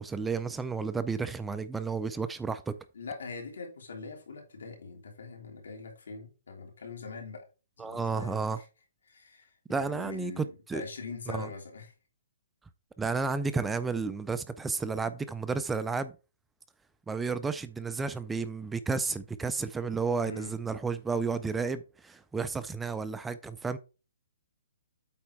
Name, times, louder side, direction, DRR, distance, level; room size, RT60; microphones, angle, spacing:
voice 1, 0.0-2.8 7.8-8.6 9.7-10.8 11.3-11.5 13.0-16.1 17.1-23.8, right 4 dB, 5° right, 0.3 m, -32 dB
voice 2, 2.9-7.4 7.8-8.7 9.1-11.9 20.2-20.6, left 4 dB, 80° left, 3.5 m, -43 dB
8.3 x 4.3 x 4.7 m
hypercardioid pair, 170°, 0 cm